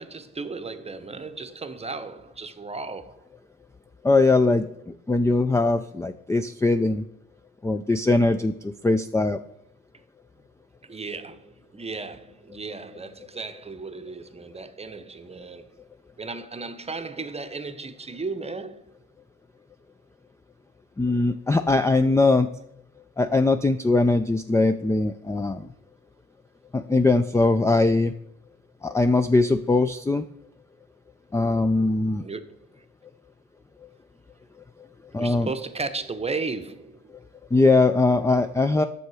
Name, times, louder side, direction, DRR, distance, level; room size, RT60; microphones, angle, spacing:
voice 1, 0.0-3.2 10.8-15.7 16.2-18.8 32.2-32.5 35.1-37.1, right 4 dB, 20° right, 0.8 m, -35 dB
voice 2, 4.0-7.0 7.6-9.4 21.0-22.5 23.2-25.7 26.7-28.1 28.8-30.2 31.3-32.2 35.1-35.5 37.5-38.8, left 3 dB, 10° left, 0.3 m, -21 dB
9.5 x 6.6 x 4.8 m
cardioid pair, 90°, 30 cm